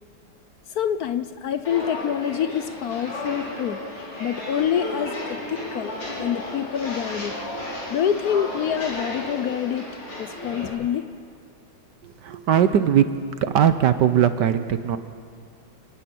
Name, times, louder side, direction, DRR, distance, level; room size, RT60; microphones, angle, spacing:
voice 1, 0.7-3.8 4.2-5.9 6.2-7.4 7.9-9.9 10.2-11.1, left 9 dB, 70° left, 12 dB, 0.9 m, -26 dB
Walk footsteps, 1.6-10.7, left 1 dB, 90° left, 5.3 m, -33 dB
voice 2, 12.0-13.1 13.4-15.0, right 9 dB, 65° right, 11 dB, 1.3 m, -20 dB
29.5 x 10.5 x 9.3 m, 2.3 s
omnidirectional pair, 2.3 m